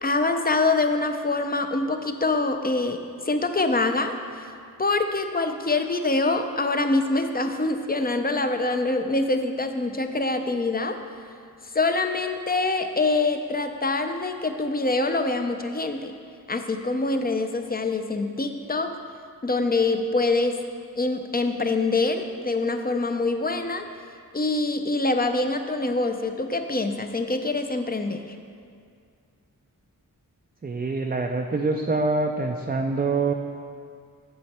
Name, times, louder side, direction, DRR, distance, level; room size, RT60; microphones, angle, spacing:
voice 1, 0.0-3.0 3.3-4.1 4.8-11.0 11.7-16.1 16.5-18.9 19.4-20.6 21.0-23.8 24.3-28.2, left 3 dB, 25° left, 6 dB, 0.5 m, -25 dB
voice 2, 30.6-33.3, right 3 dB, 25° right, 3 dB, 0.4 m, -25 dB
7.6 x 7.0 x 4.2 m, 2.3 s
wide cardioid pair, 75°, 37 cm